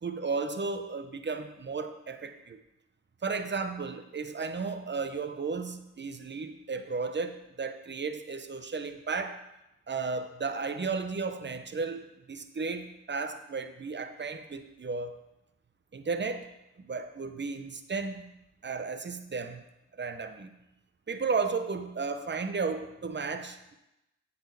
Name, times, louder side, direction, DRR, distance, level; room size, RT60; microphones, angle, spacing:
voice 1, 0.0-2.6 3.2-9.4 9.9-15.2 15.9-16.5 16.8-18.3 18.6-19.6 20.0-20.5 21.1-23.8, right 4 dB, 35° right, 9 dB, 0.9 m, -34 dB
8.0 x 4.3 x 6.9 m, 0.92 s
supercardioid pair, 40°, 32 cm